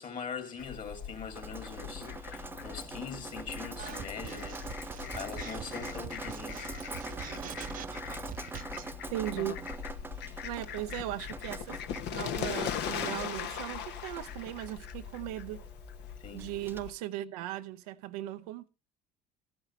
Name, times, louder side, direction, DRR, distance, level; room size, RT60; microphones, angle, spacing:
voice 1, 0.0-6.7 16.2-16.5, left 6 dB, 45° left, 2.8 m, -42 dB
Fowl, 0.6-16.9, left 8 dB, 65° left, 1.2 m, -41 dB
Drip, 1.4-16.8, right 3 dB, 10° right, 0.5 m, -45 dB
sound 1, 3.8-8.9, right 9 dB, 45° right, 0.8 m, -44 dB
voice 2, 9.1-9.6 10.4-11.8 12.1-15.6 16.3-18.7, right 14 dB, 80° right, 0.7 m, -38 dB
13.5 x 11.0 x 3.2 m
hypercardioid pair, 70°, 19 cm